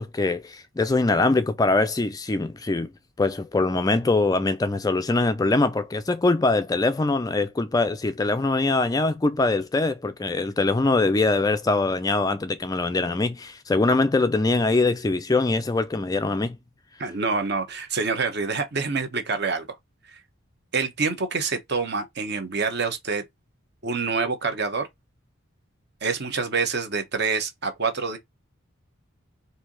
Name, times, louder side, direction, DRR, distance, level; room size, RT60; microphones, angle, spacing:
voice 1, 0.0-2.9 3.2-16.6, left 3 dB, 15° left, 0.3 m, -23 dB
voice 2, 17.0-19.7 20.1-20.2 20.7-23.2 23.8-24.9 26.0-28.2, right 4 dB, 50° right, 1.0 m, -26 dB
4.5 x 2.8 x 3.8 m
head